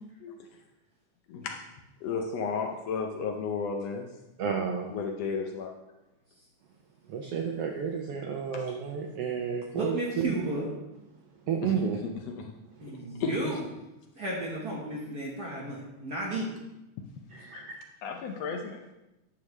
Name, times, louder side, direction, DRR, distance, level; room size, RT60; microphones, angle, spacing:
voice 1, 1.3-1.6 2.0-4.1 4.9-5.7 8.5-8.6 11.6-11.7 12.3-12.5 13.2-13.6 17.3-17.6 18.0-18.8, left 5 dB, 75° left, 2 dB, 1.6 m, -33 dB
voice 2, 4.4-4.9 7.1-10.3 11.5-12.0 17.3-17.8, right 7 dB, 75° right, 2 dB, 1.4 m, -31 dB
voice 3, 9.7-10.7 12.8-13.6 14.1-16.5, right 1 dB, 50° right, -4 dB, 1.2 m, -33 dB
9.7 x 6.9 x 3.2 m, 0.96 s
omnidirectional pair, 3.3 m